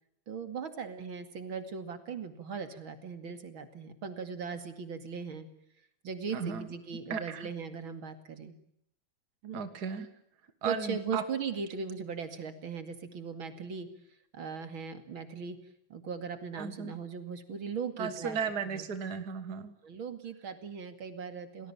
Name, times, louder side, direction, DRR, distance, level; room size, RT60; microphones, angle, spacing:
voice 1, 0.3-5.5 6.0-8.6 9.4-9.6 10.6-13.9 14.3-15.6 15.9-18.4 18.7-18.9 19.8-21.7, right 6 dB, 75° right, 9 dB, 3.2 m, -39 dB
voice 2, 6.3-6.7 7.1-7.5 9.5-10.1 10.6-11.2 16.6-16.9 18.0-19.7, right 6 dB, 50° right, 10 dB, 2.2 m, -35 dB
29.5 x 19.5 x 8.9 m, 0.73 s
omnidirectional pair, 2.2 m